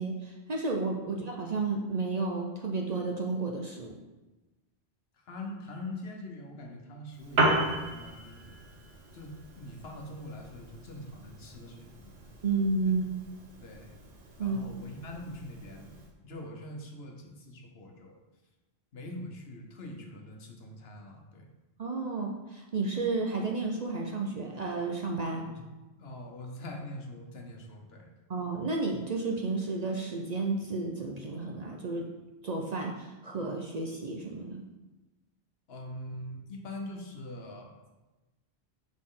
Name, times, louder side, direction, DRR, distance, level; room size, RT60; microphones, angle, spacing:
voice 1, 0.0-4.0 12.4-13.0 14.4-14.6 21.8-25.4 28.3-32.1 32.4-34.7, right 3 dB, 45° right, 0 dB, 0.6 m, -32 dB
voice 2, 5.2-8.6 9.1-12.2 13.6-13.9 14.4-18.2 18.9-21.5 25.4-25.6 26.0-28.1 35.7-37.9, left 1 dB, 70° left, 2 dB, 1.1 m, -43 dB
Piano, 7.1-16.1, right 2 dB, 70° right, 1.2 m, -35 dB
6.4 x 4.1 x 3.7 m, 1.1 s
omnidirectional pair, 1.1 m